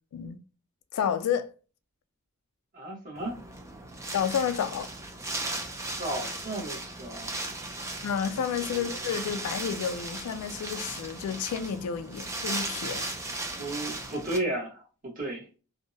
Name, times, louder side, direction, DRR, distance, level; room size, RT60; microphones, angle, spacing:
voice 1, 0.9-1.5 4.1-4.9 8.0-13.1, left 7 dB, 70° left, 0.3 m, -30 dB
voice 2, 2.7-3.4 6.0-7.5 8.3-8.8 13.6-15.4, right 1 dB, 40° right, 1.0 m, -34 dB
Wind, 3.2-14.4, right 2 dB, 15° right, 0.4 m, -37 dB
2.6 x 2.0 x 2.5 m
head